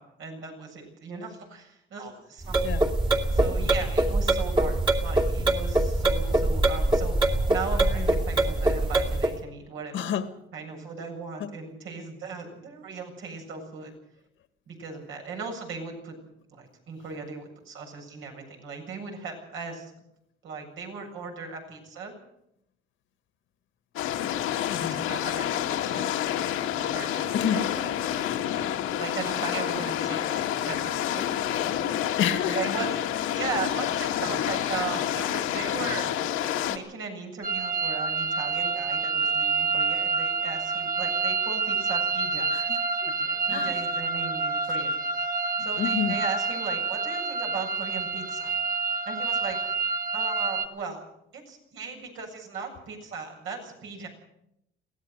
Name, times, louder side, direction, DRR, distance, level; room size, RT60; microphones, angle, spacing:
voice 1, 0.0-2.7 3.3-10.1 10.5-13.9 14.7-16.2 16.5-19.9 20.4-22.1 24.8-26.1 26.4-28.3 29.0-31.2 32.5-33.0 33.3-42.5 43.1-44.9 45.6-48.5 49.1-49.6 50.1-51.1 51.3-54.1, right 4 dB, 70° right, 2 dB, 7.6 m, -37 dB
sound 1, 2.4-9.4, right 2 dB, 20° right, 2.4 m, -24 dB
voice 2, 9.9-10.3 11.4-11.5 24.7-25.1 27.3-27.7 31.5-31.6 32.2-32.8 42.5-43.1 43.5-43.7 45.8-46.2, left 8 dB, 65° left, 9 dB, 2.0 m, -29 dB
sound 2, 24.0-36.8, left 11 dB, 85° left, 2.1 m, -28 dB
sound 3, 37.4-50.7, right 4 dB, 40° right, 1.5 m, -28 dB
22.5 x 17.0 x 6.7 m, 0.79 s
cardioid pair, 115°, 21 cm